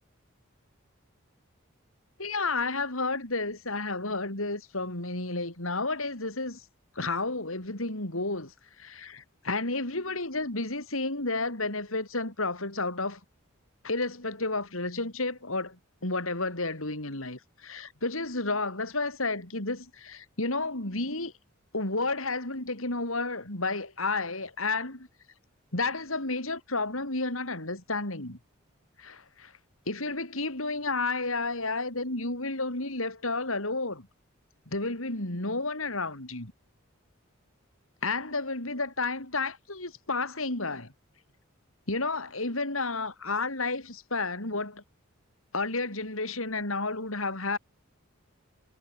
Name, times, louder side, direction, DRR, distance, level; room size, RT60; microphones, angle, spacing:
voice 1, 2.2-6.6 7.0-13.2 13.8-21.3 21.7-25.1 25.7-28.4 29.0-29.5 29.9-34.1 34.7-36.5 38.0-40.9 41.9-44.8 45.5-47.6, left 3 dB, 75° left, 5.6 m, -31 dB
head